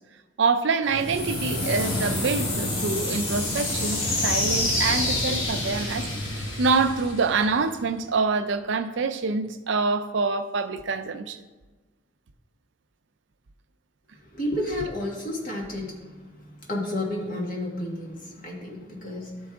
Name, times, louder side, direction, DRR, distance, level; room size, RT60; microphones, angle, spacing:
voice 1, 0.4-6.0 6.6-11.4, right 4 dB, 65° right, 0.5 m, -26 dB
sound 1, 0.8-7.7, left 1 dB, 80° left, 2.3 m, -27 dB
voice 2, 14.3-16.0 16.7-19.4, left 1 dB, 40° left, 1.6 m, -31 dB
12.0 x 4.7 x 3.5 m
head